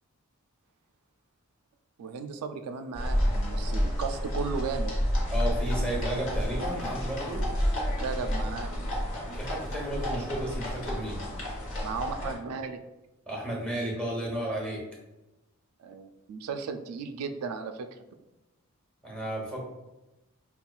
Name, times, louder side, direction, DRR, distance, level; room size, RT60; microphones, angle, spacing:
voice 1, 2.0-5.0 8.0-9.2 11.8-12.8 15.8-17.9, right 5 dB, 80° right, 6 dB, 0.3 m, -35 dB
sound 1, 2.9-12.3, equal, 65° left, 1.0 m, -30 dB
voice 2, 5.3-7.4 9.2-11.2 13.3-14.8 19.0-19.6, right 1 dB, 5° left, -3 dB, 1.0 m, -33 dB
5.4 x 2.3 x 2.3 m, 1.0 s
head